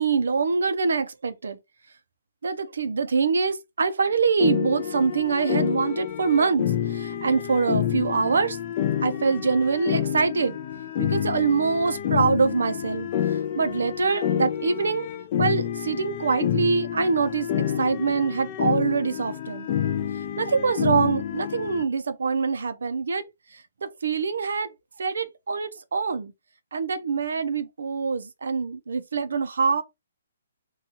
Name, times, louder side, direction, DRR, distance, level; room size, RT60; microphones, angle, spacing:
voice 1, 0.0-1.6 2.4-8.6 9.0-10.6 11.0-13.1 13.6-15.1 15.4-19.7 20.4-23.2 23.8-24.7 25.0-26.3 26.7-29.8, right 5 dB, 80° right, 0.5 m, -24 dB
sound 1, 4.4-21.8, left 10 dB, 25° left, 0.3 m, -28 dB
2.7 x 2.3 x 2.8 m
hypercardioid pair, 175°, 0 cm